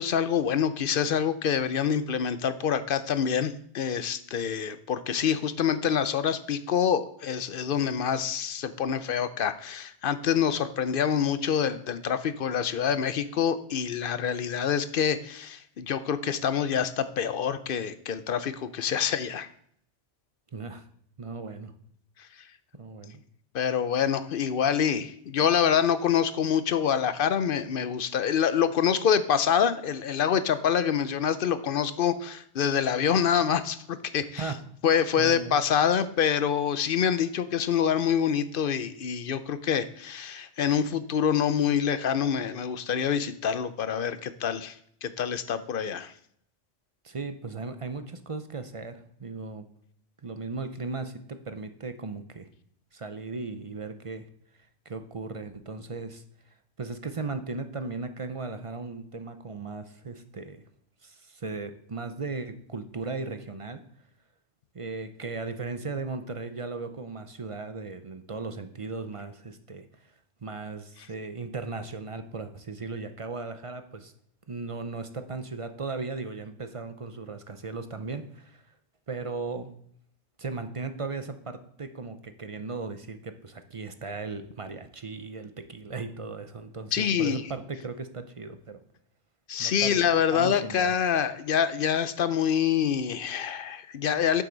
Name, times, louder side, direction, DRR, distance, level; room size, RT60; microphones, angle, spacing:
voice 1, 0.0-19.5 23.5-34.5 34.8-44.7 45.0-46.1 86.9-87.4 89.5-94.4, left 8 dB, 60° left, 13 dB, 0.7 m, -26 dB
voice 2, 20.5-20.9 21.2-21.7 22.8-23.2 34.4-34.6 35.2-35.6 47.0-49.7 50.2-52.5 52.9-54.3 54.9-56.2 56.8-60.6 61.0-63.8 64.7-69.9 70.4-74.1 74.5-78.6 79.1-79.7 80.4-88.8 89.6-90.0 90.3-90.9, right 4 dB, 35° right, 9 dB, 0.6 m, -37 dB
8.6 x 7.6 x 3.9 m, 0.65 s
omnidirectional pair, 1.2 m